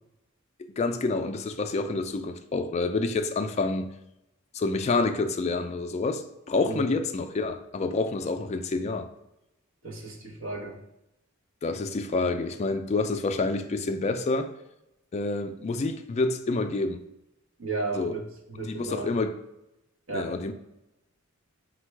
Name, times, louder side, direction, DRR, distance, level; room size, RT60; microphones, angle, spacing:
voice 1, 0.6-3.9 4.5-9.1 11.6-14.5 15.1-17.0 17.9-18.2 18.6-19.4 20.1-20.5, left 3 dB, 30° left, 0.3 m, -28 dB
voice 2, 9.8-10.8 17.6-19.1 20.1-20.3, right 3 dB, 65° right, 0.9 m, -34 dB
4.4 x 2.2 x 4.5 m
head